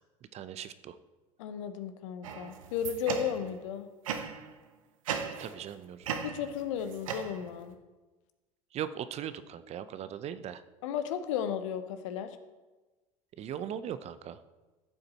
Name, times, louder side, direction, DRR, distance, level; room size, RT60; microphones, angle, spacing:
voice 1, 0.3-1.0 5.4-6.2 8.7-10.6 13.4-14.4, right 9 dB, 40° right, 13 dB, 0.7 m, -39 dB
voice 2, 1.4-3.9 6.2-7.7 10.8-12.4, left 8 dB, 65° left, 10 dB, 1.0 m, -34 dB
sound 1, 2.2-3.6 4.0-4.5 5.1-5.7 6.0-7.7, right 7 dB, 75° right, 1.1 m, -37 dB
14.5 x 7.8 x 4.2 m, 1.2 s
figure-of-eight pair, 75°, 17 cm